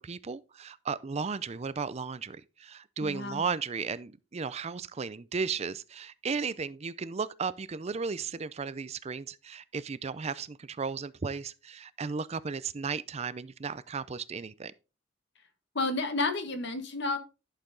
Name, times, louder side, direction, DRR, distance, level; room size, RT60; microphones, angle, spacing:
voice 1, 0.0-14.7, right 5 dB, 30° right, 0.4 m, -35 dB
voice 2, 3.0-3.4 15.7-17.2, left 3 dB, 60° left, 1.6 m, -31 dB
11.5 x 6.7 x 3.9 m
head